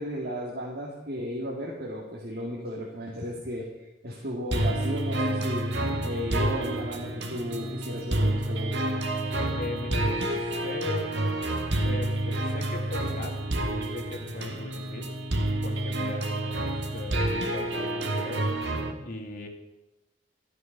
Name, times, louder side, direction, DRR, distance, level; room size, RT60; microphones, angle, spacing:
voice 1, 0.0-5.7 6.0-8.7, equal, 55° right, -3 dB, 2.1 m, -34 dB
sound 1, 4.5-18.9, right 1 dB, 70° right, 1.6 m, -29 dB
voice 2, 9.6-11.2 11.8-15.2 15.6-18.5 19.0-19.5, left 2 dB, 50° left, 3 dB, 2.1 m, -39 dB
13.5 x 9.2 x 5.7 m, 0.97 s
head